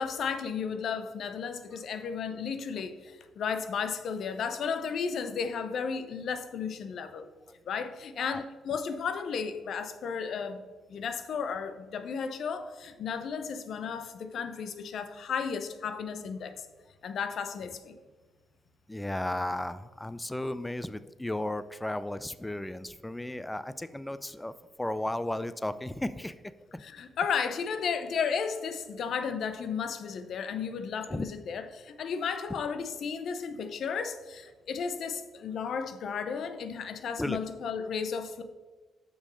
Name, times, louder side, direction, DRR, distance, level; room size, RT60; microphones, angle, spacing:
voice 1, 0.0-7.3 7.7-10.6 10.9-16.7 17.0-17.9 26.8-38.4, left 6 dB, 65° left, 9 dB, 0.7 m, -34 dB
voice 2, 18.9-26.8 31.1-31.3 37.2-37.4, left 1 dB, 10° left, 14 dB, 0.3 m, -34 dB
6.4 x 6.0 x 5.5 m, 1.3 s
cardioid pair, 90°, 0 cm